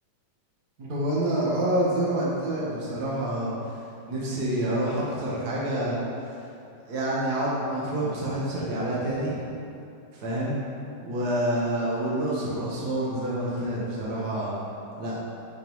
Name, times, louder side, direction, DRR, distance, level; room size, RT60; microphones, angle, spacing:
voice 1, 0.8-3.8 4.1-6.0 6.9-9.4 10.1-10.6 11.0-14.5 15.0-15.2, right 1 dB, 70° right, -6 dB, 0.9 m, -27 dB
9.7 x 5.4 x 3.1 m, 2.6 s
omnidirectional pair, 3.9 m